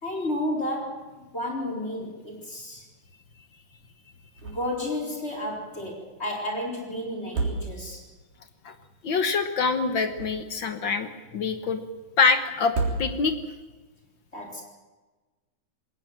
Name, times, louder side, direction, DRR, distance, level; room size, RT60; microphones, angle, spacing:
voice 1, 0.0-2.8 4.4-8.0 14.3-14.6, left 1 dB, 20° left, 0 dB, 4.6 m, -32 dB
sound 1, 4.4-4.9 5.2-5.3 7.1-8.2 9.9-10.7 12.6-13.5, right 3 dB, 75° right, 5.2 m, -31 dB
voice 2, 9.0-11.8 12.2-12.7 13.0-13.3, left 4 dB, 60° left, 8 dB, 1.2 m, -25 dB
20.5 x 18.5 x 7.4 m, 1.2 s
omnidirectional pair, 3.8 m